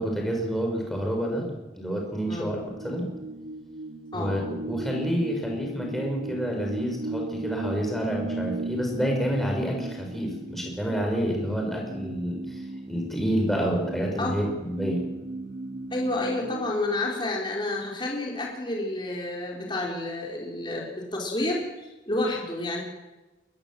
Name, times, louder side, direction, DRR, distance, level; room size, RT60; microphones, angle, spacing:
voice 1, 0.0-1.5 1.8-2.6 2.8-3.1 4.1-12.6 12.9-15.0, equal, ahead, 0 dB, 5.4 m, -28 dB
voice 2, 2.2-2.6 4.1-4.4 13.5-13.7 14.2-14.4 15.9-22.8, left 2 dB, 25° left, -2 dB, 4.0 m, -30 dB
sound 1, 2.5-16.7, right 2 dB, 85° right, 2.5 m, -37 dB
23.0 x 19.5 x 7.6 m, 1.1 s
head